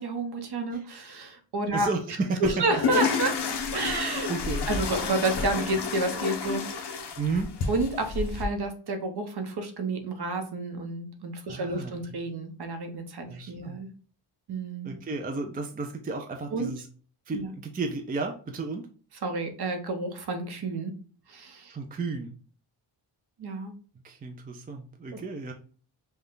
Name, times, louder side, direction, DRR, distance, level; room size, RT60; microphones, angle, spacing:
voice 1, 0.0-1.9 2.4-3.4 3.7-4.3 4.7-6.8 7.7-13.9 14.5-14.9 16.5-16.7 17.3-17.5 19.2-21.0 21.3-21.8 23.4-23.7 25.1-25.2, right 2 dB, 55° right, 6 dB, 1.0 m, -30 dB
voice 2, 1.7-2.8 3.8-4.7 7.2-7.5 11.5-11.9 13.3-13.8 14.8-16.9 17.3-18.9 21.7-22.3 24.0-25.5, right 3 dB, 20° right, 4 dB, 0.4 m, -33 dB
sound 1, 2.4-8.4, left 5 dB, 60° left, 0.9 m, -30 dB
5.4 x 2.3 x 3.7 m, 0.40 s
wide cardioid pair, 170°, 46 cm